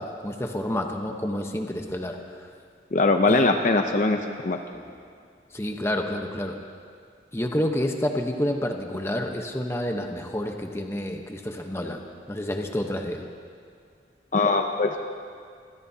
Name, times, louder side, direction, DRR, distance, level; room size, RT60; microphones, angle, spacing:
voice 1, 0.0-2.2 3.3-3.5 4.1-4.2 4.7-5.0 5.5-6.6 7.3-12.0 12.3-13.3, left 1 dB, 15° left, 3 dB, 1.0 m, -29 dB
voice 2, 2.9-4.6 14.3-15.0, left 3 dB, 45° left, 5 dB, 0.6 m, -21 dB
26.0 x 16.5 x 2.8 m, 2.2 s
head